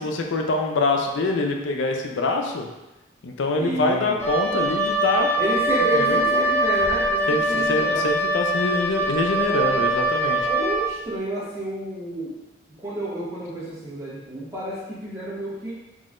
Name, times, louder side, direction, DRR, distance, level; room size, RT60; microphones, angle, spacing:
voice 1, 0.0-2.7 3.2-5.3 5.9-6.2 7.3-10.4, left 2 dB, 85° left, 3 dB, 0.4 m, -24 dB
voice 2, 3.6-4.1 5.4-8.1 9.3-12.4 12.8-15.7, right 2 dB, 15° right, -8 dB, 1.1 m, -30 dB
Wind instrument woodwind instrument, 4.2-10.9, right 1 dB, 15° left, 0.4 m, -23 dB
3.7 x 3.0 x 2.5 m, 1.0 s
head